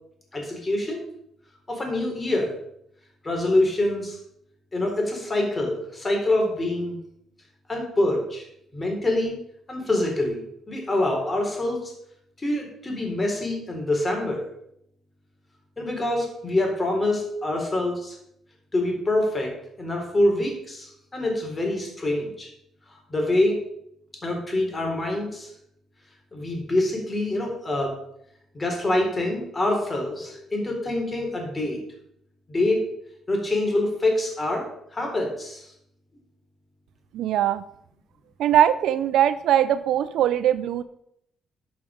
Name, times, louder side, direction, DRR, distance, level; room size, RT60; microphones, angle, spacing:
voice 1, 0.3-1.0 1.7-2.5 3.2-4.2 4.7-7.0 7.7-8.4 8.7-9.3 9.7-10.4 10.7-11.9 12.4-14.4 15.8-18.2 18.7-19.5 19.8-22.5 23.1-23.6 24.2-25.5 26.3-27.9 28.5-31.8 32.5-32.8 33.3-34.6 34.9-35.7, left 1 dB, 25° left, 1 dB, 3.8 m, -25 dB
voice 2, 37.1-37.6 38.4-40.8, right 10 dB, 80° right, 14 dB, 0.4 m, -21 dB
11.5 x 5.9 x 5.0 m, 0.75 s
cardioid pair, 90°, 0 cm